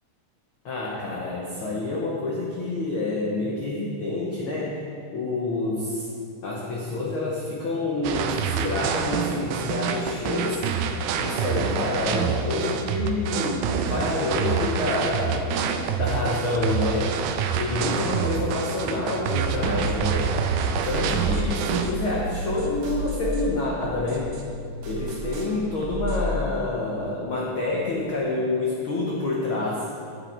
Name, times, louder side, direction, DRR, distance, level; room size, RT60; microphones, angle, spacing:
voice 1, 0.6-4.8 5.1-6.1 6.4-10.6 11.2-15.6 16.0-17.2 17.5-20.3 20.8-24.3 24.8-29.9, left 2 dB, 70° left, -4 dB, 1.2 m, -27 dB
sound 1, 8.0-21.9, right 7 dB, 80° right, 2.1 m, -27 dB
sound 2, 19.4-26.4, right 2 dB, 65° right, 1.4 m, -32 dB
10.0 x 6.9 x 4.4 m, 2.4 s
omnidirectional pair, 3.8 m